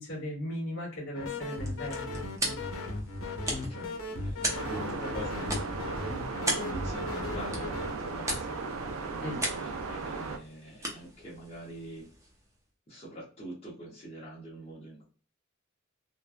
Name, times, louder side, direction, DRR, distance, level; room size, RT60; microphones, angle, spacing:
voice 1, 0.0-2.0 9.2-9.4, equal, 60° left, -9 dB, 1.3 m, -37 dB
sound 1, 1.1-7.9, left 2 dB, 85° left, 0.7 m, -37 dB
sound 2, 1.3-12.6, right 1 dB, 15° right, 0.6 m, -39 dB
voice 2, 3.7-5.7 6.4-9.3 9.5-12.1 12.9-15.0, equal, 30° left, -6 dB, 0.8 m, -44 dB
sound 3, 4.5-10.4, right 4 dB, 80° right, 0.5 m, -36 dB
3.0 x 2.2 x 2.3 m, 0.40 s
head